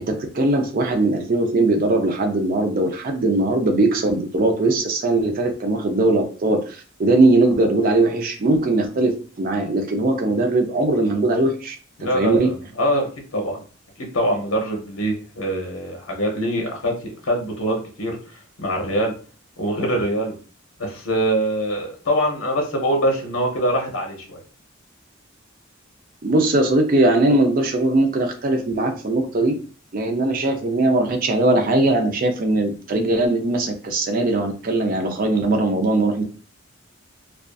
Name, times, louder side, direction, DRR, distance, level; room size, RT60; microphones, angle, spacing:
voice 1, 0.1-12.5 26.2-29.6 29.9-36.2, right 2 dB, 45° right, 3 dB, 0.4 m, -20 dB
voice 2, 12.0-13.6 14.1-18.2 18.6-19.1 19.6-20.4 20.8-24.4, right 1 dB, 80° left, 2 dB, 0.7 m, -23 dB
2.5 x 2.3 x 2.3 m, 0.39 s
head